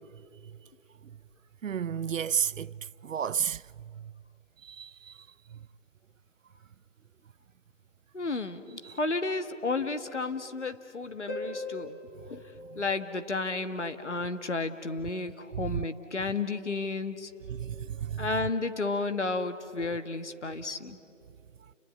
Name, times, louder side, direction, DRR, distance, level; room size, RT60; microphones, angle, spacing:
voice 1, 1.6-4.1 4.6-5.7 8.8-9.0 12.7-12.8 15.5-15.8 17.5-18.5, right 8 dB, 80° right, 0.5 m, -33 dB
voice 2, 8.1-12.0 12.3-12.4 12.8-17.3 18.2-21.0, left 3 dB, 65° left, 1.8 m, -32 dB
Harp, 11.3-13.8 17.3-17.4, left 2 dB, 10° left, 2.0 m, -41 dB
29.5 x 20.5 x 9.2 m
figure-of-eight pair, 170°, 38 cm